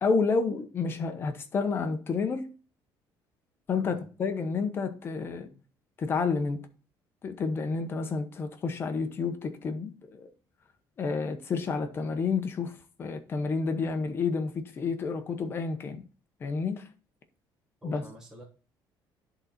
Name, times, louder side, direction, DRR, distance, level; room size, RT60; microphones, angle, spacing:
voice 1, 0.0-2.5 3.7-5.5 6.0-6.6 7.2-10.3 11.0-16.0 16.4-16.8 17.8-18.0, left 4 dB, 25° left, 0.9 m, -30 dB
voice 2, 3.8-4.1 5.5-5.6 17.8-18.4, equal, 5° right, 1.4 m, -47 dB
10.5 x 4.0 x 4.3 m
cardioid pair, 180°, 8 cm